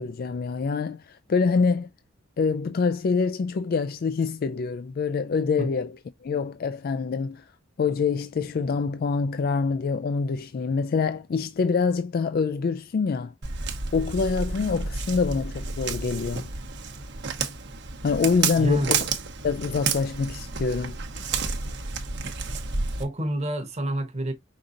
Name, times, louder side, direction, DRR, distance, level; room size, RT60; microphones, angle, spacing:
voice 1, 0.0-1.9 2.4-5.9 6.2-7.5 7.8-13.3 13.9-16.5 18.0-19.1 19.4-21.0, left 5 dB, 50° left, 0.3 m, -25 dB
Walk footsteps, 13.4-23.0, right 5 dB, 60° right, 1.0 m, -31 dB
voice 2, 18.6-19.0 22.4-22.6 23.0-24.3, right 1 dB, 35° right, 1.1 m, -28 dB
5.3 x 3.7 x 2.5 m
head